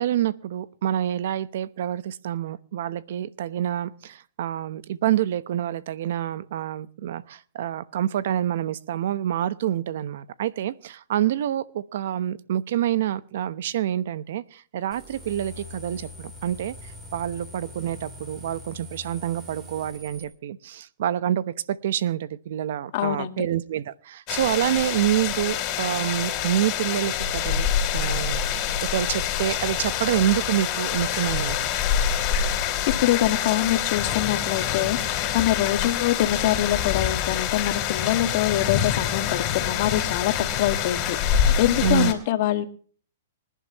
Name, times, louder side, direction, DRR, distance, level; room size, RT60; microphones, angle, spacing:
voice 1, 0.0-16.7 17.1-27.7 27.9-31.7 41.8-42.1, right 11 dB, 65° right, 16 dB, 1.0 m, -27 dB
sound 1, 14.9-20.2, left 2 dB, 20° right, 5.3 m, -43 dB
voice 2, 22.9-23.5 33.0-35.0 35.3-42.6, left 13 dB, 50° left, 8 dB, 1.9 m, -24 dB
sound 2, 24.3-42.1, left 9 dB, 35° left, 3.6 m, -26 dB
26.0 x 11.0 x 3.0 m, 0.44 s
hypercardioid pair, 145°, 0 cm